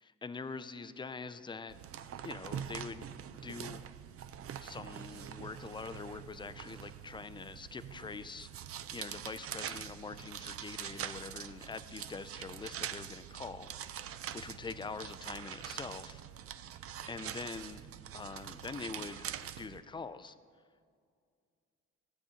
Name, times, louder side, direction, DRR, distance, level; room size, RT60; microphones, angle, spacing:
voice 1, 0.0-1.8 2.2-3.8 4.6-16.2 17.1-17.8 18.1-20.3, left 4 dB, 15° left, 13 dB, 0.3 m, -44 dB
sound 1, 1.7-19.8, right 10 dB, 50° right, 0.4 m, -44 dB
14.0 x 7.8 x 2.9 m, 2.2 s
cardioid pair, 90°, 30 cm